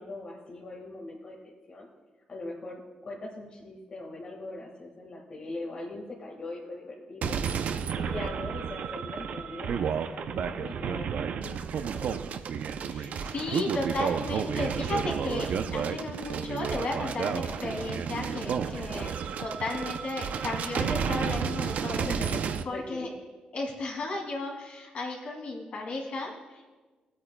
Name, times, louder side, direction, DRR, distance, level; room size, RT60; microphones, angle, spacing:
voice 1, 0.0-1.9 2.3-7.4 7.7-12.2 17.5-17.9 18.8-19.1 21.9-23.1, left 2 dB, 45° left, -3 dB, 1.6 m, -41 dB
sound 1, 7.2-22.6, right 7 dB, 75° right, 0.5 m, -31 dB
voice 2, 12.9-22.1 22.6-23.1 23.5-26.7, left 2 dB, 60° left, -1 dB, 2.5 m, -34 dB
20.0 x 8.4 x 2.2 m, 1.3 s
cardioid pair, 115°, 3 cm